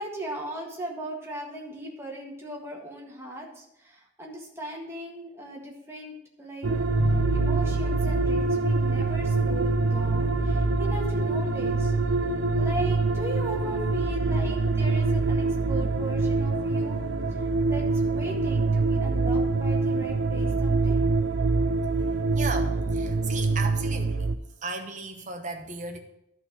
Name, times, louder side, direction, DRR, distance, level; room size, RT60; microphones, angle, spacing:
voice 1, 0.0-6.7 7.3-11.9 12.6-17.0 17.7-21.0, right 1 dB, 15° right, -2 dB, 1.7 m, -38 dB
sound 1, 6.6-24.4, right 3 dB, 85° right, 0.6 m, -25 dB
sound 2, 7.0-14.6, left 4 dB, 85° left, 0.6 m, -40 dB
voice 2, 22.3-24.3 24.6-26.0, right 3 dB, 40° right, 5 dB, 1.0 m, -35 dB
11.5 x 4.3 x 6.0 m, 0.79 s
head